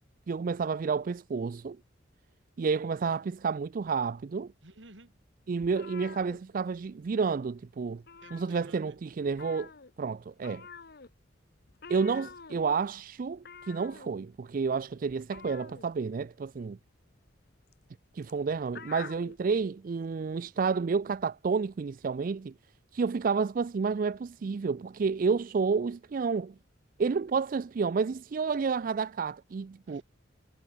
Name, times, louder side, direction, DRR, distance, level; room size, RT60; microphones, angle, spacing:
voice 1, 0.3-1.8 2.6-4.5 5.5-8.0 8.3-9.7 10.0-10.7 11.9-16.8 18.1-22.5 22.9-26.5 27.0-30.0, right 5 dB, 45° right, 0.4 m, -30 dB
voice 2, 4.6-5.2 8.2-9.0 29.9-30.0, right 2 dB, 70° right, 3.6 m, -53 dB
sound 1, 5.6-7.1 7.4-7.6 7.9-9.0 9.3-19.4, left 5 dB, 55° left, 1.1 m, -48 dB
head